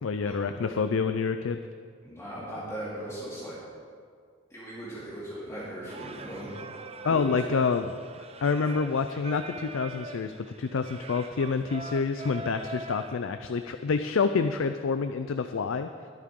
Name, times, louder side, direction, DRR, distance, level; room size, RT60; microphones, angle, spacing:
voice 1, 0.0-1.6 7.0-8.0 8.4-10.3 10.6-15.9, left 5 dB, 80° left, 9 dB, 0.4 m, -27 dB
voice 2, 2.0-3.6 4.5-6.5 7.1-7.4, right 1 dB, 15° left, -8 dB, 2.5 m, -38 dB
Singing, 5.9-13.1, right 2 dB, 30° right, 0.6 m, -42 dB
21.5 x 8.5 x 3.7 m, 2.1 s
head